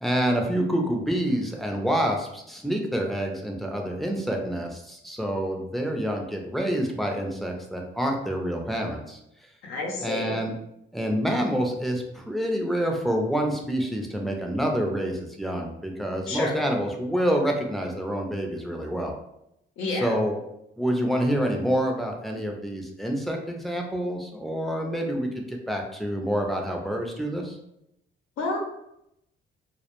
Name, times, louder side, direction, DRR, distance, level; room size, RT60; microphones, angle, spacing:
voice 1, 0.0-9.2 10.0-10.5 10.9-19.1 19.9-20.4 20.8-27.6, equal, ahead, 1 dB, 0.4 m, -27 dB
voice 2, 9.6-10.4 16.3-16.5 19.8-20.1 28.4-28.6, left 2 dB, 90° left, 0 dB, 0.7 m, -29 dB
2.2 x 2.1 x 2.9 m, 0.80 s
cardioid pair, 90°, 20 cm